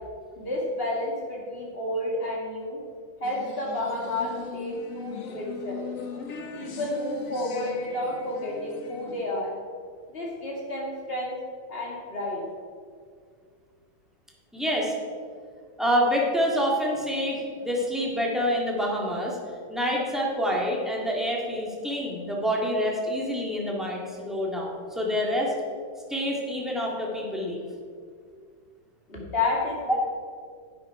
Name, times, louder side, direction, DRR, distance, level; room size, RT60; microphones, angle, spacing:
voice 1, 0.4-2.8 3.2-5.8 6.5-9.5 10.1-11.3 11.7-12.5 29.1-30.0, left 1 dB, 30° left, -3 dB, 2.4 m, -31 dB
sound 1, 3.2-9.2, left 5 dB, 50° left, 1.1 m, -39 dB
voice 2, 14.5-15.0 15.8-19.4 19.7-25.5 26.1-27.7 29.9-30.0, equal, ahead, -3 dB, 1.7 m, -27 dB
10.5 x 8.1 x 4.8 m, 2.1 s
omnidirectional pair, 2.2 m